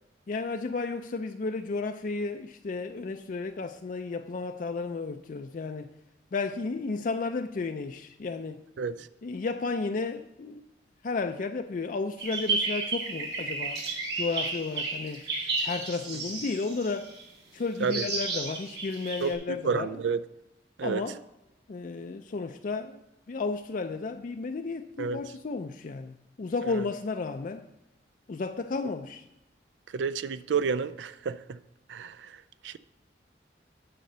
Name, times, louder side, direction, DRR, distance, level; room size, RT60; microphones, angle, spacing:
voice 1, 0.3-5.9 6.3-8.6 9.2-10.6 11.0-13.8 14.2-15.2 15.6-17.1 17.5-20.0 20.8-21.2 21.7-23.0 23.3-27.6 28.3-29.2, left 4 dB, 50° left, 0.4 m, -33 dB
sound 1, 12.2-17.2 17.9-19.3, right 3 dB, 65° right, 2.0 m, -32 dB
voice 2, 19.2-20.2 20.8-21.0 25.0-25.2 26.6-26.8 29.9-31.6 31.9-32.4 32.6-32.8, right 5 dB, 90° right, 0.4 m, -30 dB
9.1 x 4.3 x 6.7 m
head